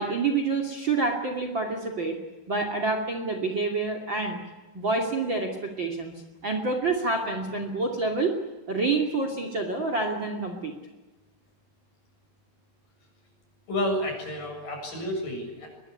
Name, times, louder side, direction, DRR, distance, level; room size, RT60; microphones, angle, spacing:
voice 1, 0.0-2.2 2.5-4.4 4.7-6.1 6.4-8.3 8.7-10.7, right 3 dB, 35° right, 5 dB, 2.7 m, -27 dB
voice 2, 13.7-15.7, left 1 dB, 55° left, 3 dB, 8.8 m, -30 dB
23.5 x 21.5 x 9.8 m, 1.2 s
omnidirectional pair, 4.6 m